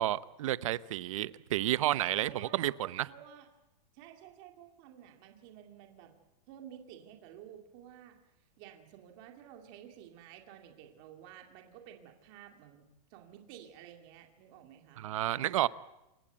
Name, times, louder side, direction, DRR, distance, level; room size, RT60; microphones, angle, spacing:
voice 1, 0.0-3.1 15.0-15.7, right 14 dB, 55° right, 0.8 m, -31 dB
voice 2, 1.8-2.7 3.1-3.5 3.9-6.1 6.5-8.2 8.6-15.0, right 10 dB, 30° right, 2.3 m, -52 dB
28.0 x 16.5 x 9.0 m
supercardioid pair, 175°, 20 cm